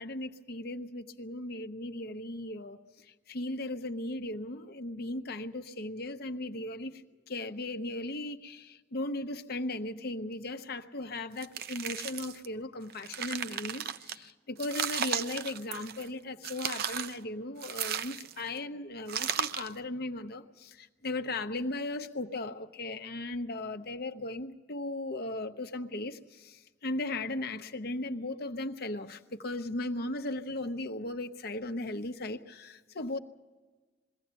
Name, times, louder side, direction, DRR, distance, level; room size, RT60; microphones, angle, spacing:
voice 1, 0.0-2.8 3.3-7.0 7.3-33.2, left 2 dB, 55° left, 7 dB, 1.0 m, -37 dB
sound 1, 11.4-12.5 12.9-14.2 14.6-16.1 16.4-17.2 17.6-18.5 19.1-19.8, right 8 dB, 55° right, 0.6 m, -35 dB
22.0 x 15.5 x 8.8 m, 1.3 s
head